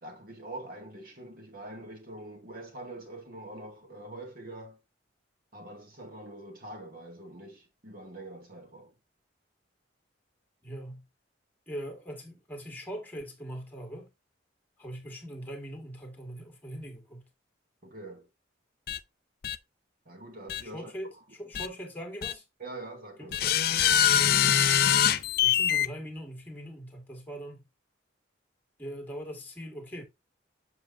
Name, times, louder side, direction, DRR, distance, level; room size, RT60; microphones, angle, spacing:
voice 1, 0.0-4.8 5.5-8.9 17.8-18.3 20.1-20.9 22.6-23.5, right 1 dB, 50° right, 2.0 m, -44 dB
voice 2, 10.6-11.0 11.7-14.1 14.8-17.3 20.6-22.4 23.2-23.8 24.1-24.6 25.4-27.6 28.8-30.0, equal, 10° left, 2.0 m, -41 dB
sound 1, 18.9-19.0 19.4-19.6 20.5-20.6 21.5-21.7 22.2-22.3 23.3-25.9, left 9 dB, 55° left, 0.5 m, -23 dB
7.5 x 5.7 x 2.6 m
head